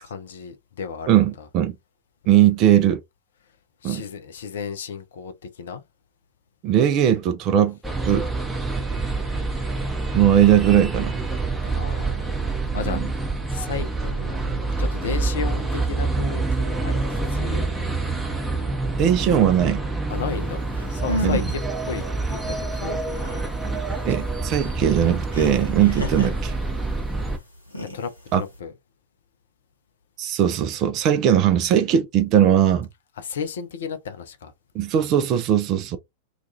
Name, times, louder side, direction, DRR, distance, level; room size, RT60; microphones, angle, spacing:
voice 1, 0.0-1.1 3.8-5.8 11.6-12.3 12.7-13.0 13.5-17.0 17.3-17.7 20.1-20.6 20.9-22.0 22.3-23.4 27.9-28.7 33.2-34.5, left 6 dB, 60° left, 0.5 m, -33 dB
voice 2, 1.1-1.7 2.3-3.0 3.8-4.0 6.6-7.8 8.0-8.3 10.1-11.2 12.9-13.0 19.0-19.8 21.2-21.4 24.1-26.6 28.3-28.4 30.2-32.9 34.7-36.0, right 10 dB, 35° right, 0.4 m, -19 dB
sound 1, 7.8-27.4, right 3 dB, 5° right, 0.7 m, -27 dB
sound 2, 20.5-20.6 20.7-21.6 22.0-22.1 22.4-27.0 27.5-28.6, left 1 dB, 80° left, 0.9 m, -32 dB
2.4 x 2.3 x 2.7 m
figure-of-eight pair, 90°, 0 cm